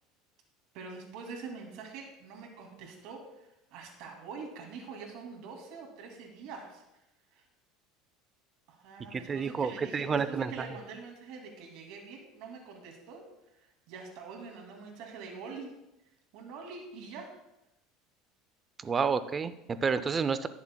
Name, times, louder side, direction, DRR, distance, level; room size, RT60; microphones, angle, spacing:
voice 1, 0.7-6.8 7.3-7.4 8.7-13.2 13.9-15.7 16.3-17.3, right 4 dB, 60° right, 2 dB, 2.3 m, -45 dB
voice 2, 9.1-10.6 18.8-20.5, right 5 dB, 20° right, 13 dB, 0.4 m, -30 dB
19.5 x 7.1 x 2.2 m, 0.89 s
cardioid pair, 155°, 0 cm